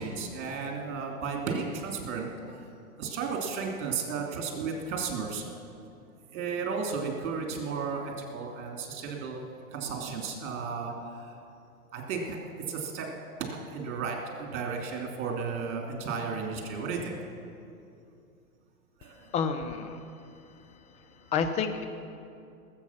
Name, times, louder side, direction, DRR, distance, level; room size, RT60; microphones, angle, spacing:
voice 1, 0.0-2.5 3.0-5.4 6.3-9.4 9.7-11.4 11.9-12.4 12.7-13.1 13.4-17.1 19.0-19.3, right 5 dB, 50° right, 1 dB, 3.2 m, -34 dB
voice 2, 19.3-20.0 21.3-21.8, left 6 dB, 15° left, 7 dB, 0.6 m, -29 dB
20.5 x 8.1 x 5.9 m, 2.5 s
hypercardioid pair, 120°, 45 cm